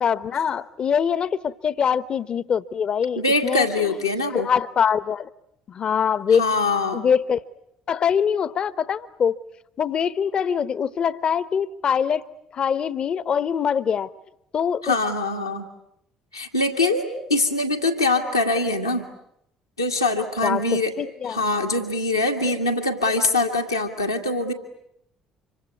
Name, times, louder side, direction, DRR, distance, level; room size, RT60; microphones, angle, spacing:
voice 1, 0.0-4.0 4.3-5.3 5.7-6.4 6.9-7.4 7.9-9.4 9.8-12.2 12.5-14.1 14.5-14.9 20.4-20.6 21.0-21.4, left 7 dB, 45° left, 1.0 m, -23 dB
voice 2, 3.2-4.5 6.3-7.0 14.8-15.7 16.3-19.1 19.8-20.9 21.3-24.5, left 2 dB, 90° left, 2.0 m, -23 dB
26.5 x 24.0 x 9.5 m
figure-of-eight pair, 50°, 2 cm